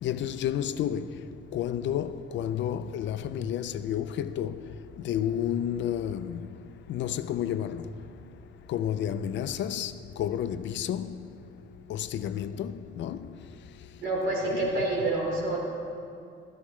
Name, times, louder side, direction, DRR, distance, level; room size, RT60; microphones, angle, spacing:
voice 1, 0.0-1.2 1.5-4.6 5.0-6.5 6.9-7.9 8.7-11.3 11.9-13.3, left 10 dB, 75° left, 0.5 m, -31 dB
voice 2, 14.0-15.6, right 2 dB, 80° right, 3.2 m, -27 dB
13.5 x 13.0 x 3.2 m
cardioid pair, 155°, 19 cm